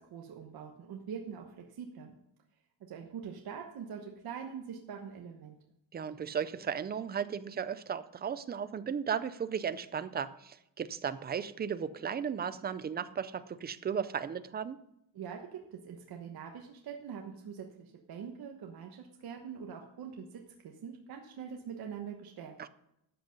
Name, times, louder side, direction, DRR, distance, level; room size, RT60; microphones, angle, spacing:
voice 1, 0.0-2.1 2.9-5.5 15.1-22.5, right 7 dB, 50° right, 2 dB, 1.2 m, -44 dB
voice 2, 5.9-14.8 22.6-22.7, right 7 dB, 25° right, 14 dB, 0.4 m, -35 dB
13.0 x 8.0 x 5.2 m, 0.80 s
cardioid pair, 170°, 46 cm